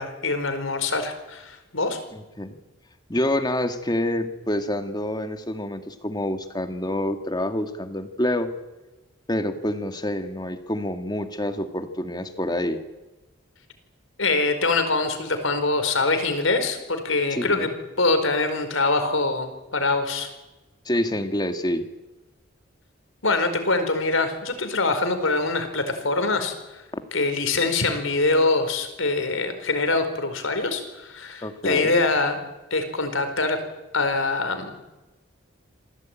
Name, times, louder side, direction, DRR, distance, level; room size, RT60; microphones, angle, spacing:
voice 1, 0.0-2.0 14.2-17.7 18.0-20.3 23.2-26.8 27.1-32.4 32.7-33.6 33.9-34.7, left 3 dB, 75° left, 8 dB, 4.5 m, -24 dB
voice 2, 2.1-2.5 3.1-8.5 9.3-12.8 17.3-17.7 20.9-21.9 31.4-32.0, left 1 dB, 20° left, 7 dB, 2.0 m, -27 dB
27.5 x 18.0 x 9.1 m, 1.1 s
head